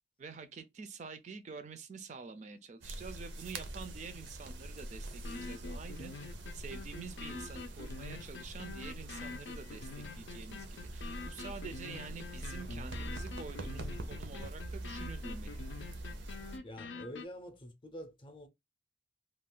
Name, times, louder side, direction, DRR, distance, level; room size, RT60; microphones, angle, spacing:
voice 1, 0.2-6.1 6.5-10.7 10.9-15.6, right 5 dB, 40° right, 0.4 m, -47 dB
sound 1, 2.8-16.6, right 1 dB, 85° right, 0.6 m, -44 dB
sound 2, 3.8-3.9 4.3-4.4 4.8-4.9 5.2-17.3, left 4 dB, 85° left, 0.4 m, -46 dB
voice 2, 16.6-18.5, equal, 30° left, 0.5 m, -47 dB
2.4 x 2.2 x 3.6 m
head